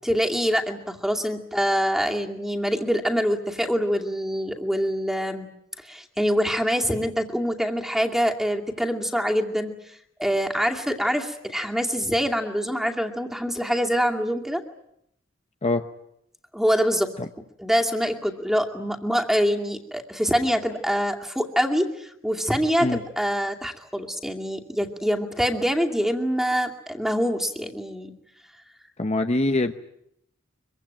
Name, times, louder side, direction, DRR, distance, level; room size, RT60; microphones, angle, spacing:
voice 1, 0.0-5.5 5.8-9.8 10.2-14.6 16.5-17.1 17.6-28.1, equal, ahead, 2 dB, 2.4 m, -25 dB
voice 2, 29.0-29.7, left 2 dB, 35° left, 7 dB, 1.0 m, -23 dB
24.5 x 24.0 x 9.0 m, 0.75 s
head